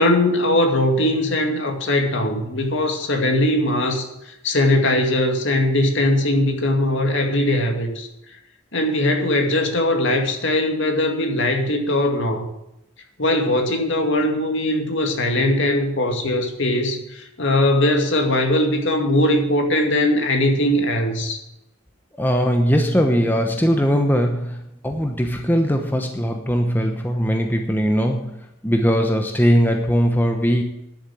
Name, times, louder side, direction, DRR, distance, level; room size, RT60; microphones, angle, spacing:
voice 1, 0.0-4.1 4.4-8.1 8.7-12.4 13.2-17.0 17.4-21.4, left 1 dB, 60° left, 3 dB, 2.2 m, -20 dB
voice 2, 22.2-30.6, equal, 10° left, 4 dB, 0.9 m, -20 dB
11.5 x 7.2 x 8.5 m, 0.87 s
head